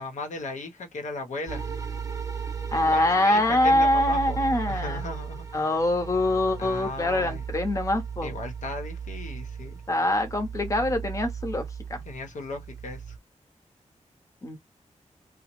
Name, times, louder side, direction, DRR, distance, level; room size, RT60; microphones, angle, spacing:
voice 1, 0.0-1.6 2.9-4.4 4.7-5.7 6.6-7.4 8.2-9.7 12.1-13.0, left 2 dB, 75° left, 0.8 m, -36 dB
sound 1, 1.5-13.2, right 6 dB, 25° right, 0.5 m, -36 dB
voice 2, 2.7-5.1 5.5-8.3 9.9-11.6 11.9-12.0 14.4-14.6, left 1 dB, 25° left, 0.8 m, -24 dB
2.9 x 2.0 x 3.0 m
wide cardioid pair, 170°, 13 cm